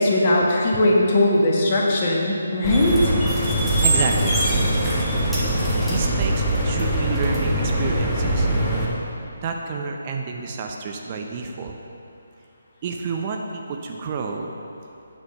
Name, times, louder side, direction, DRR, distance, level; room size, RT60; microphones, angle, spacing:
voice 1, 0.0-3.1, left 1 dB, 35° left, -3 dB, 1.6 m, -19 dB
sound 1, 2.6-8.9, right 1 dB, ahead, 1.6 m, -22 dB
voice 2, 3.8-4.4 5.9-8.5 9.4-11.8 12.8-14.5, right 5 dB, 30° right, 2 dB, 0.6 m, -29 dB
9.1 x 6.4 x 5.3 m, 2.7 s
figure-of-eight pair, 145°, 0 cm